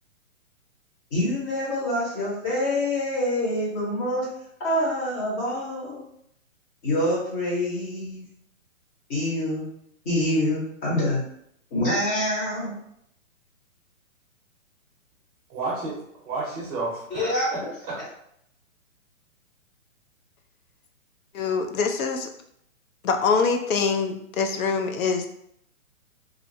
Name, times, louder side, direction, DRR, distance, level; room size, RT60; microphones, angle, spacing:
voice 1, 1.1-4.3 4.6-6.0 6.8-8.3 9.1-9.7 10.0-11.2 11.7-12.7 17.1-17.5, left 1 dB, 20° left, -6 dB, 0.8 m, -26 dB
voice 2, 15.5-16.0 16.2-18.0, right 3 dB, 30° right, -3 dB, 0.7 m, -31 dB
voice 3, 21.3-22.3 23.0-25.3, left 5 dB, 85° left, 6 dB, 0.5 m, -24 dB
2.4 x 2.1 x 2.6 m, 0.72 s
hypercardioid pair, 145°, 41 cm